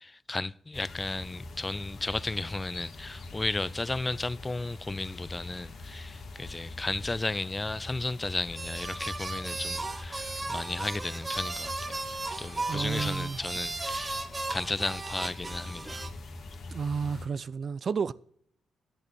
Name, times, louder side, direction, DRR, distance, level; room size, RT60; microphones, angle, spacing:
voice 1, 0.0-12.0 12.4-14.2 14.5-16.0, left 2 dB, 25° left, 0.5 m, -34 dB
sound 1, 0.7-17.3, left 2 dB, 60° left, 2.2 m, -44 dB
sound 2, 8.6-16.1, right 3 dB, 30° right, 1.1 m, -36 dB
voice 2, 12.7-13.4 16.7-18.1, right 5 dB, 50° right, 0.4 m, -31 dB
11.0 x 8.2 x 6.4 m
hypercardioid pair, 40°, 0 cm